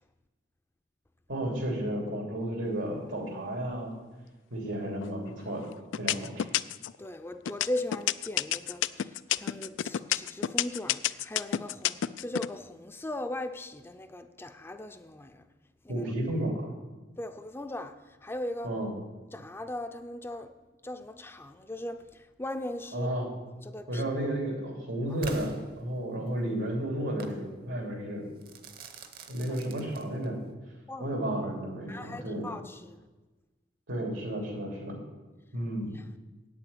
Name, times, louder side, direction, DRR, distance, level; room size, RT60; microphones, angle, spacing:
voice 1, 1.3-3.9 4.5-5.7 6.0-6.5 15.9-16.7 18.6-18.9 22.9-23.3 23.9-28.3 29.3-30.4 31.0-32.5 33.9-35.0 35.5-35.9, right 1 dB, 90° right, 2.9 m, -32 dB
sound 1, 5.0-5.5 5.9-7.0 7.5-12.5, left 11 dB, 90° left, 0.3 m, -29 dB
voice 2, 7.0-15.4 15.8-16.0 17.2-18.7 19.3-20.5 20.8-23.1 23.6-24.0 30.9-31.2 31.9-33.0 35.9-36.0, left 1 dB, 15° left, 0.5 m, -38 dB
Crackle / Fireworks, 25.2-26.4 27.2-27.4 28.4-30.4, right 3 dB, 55° right, 0.9 m, -44 dB
8.6 x 6.9 x 8.4 m
head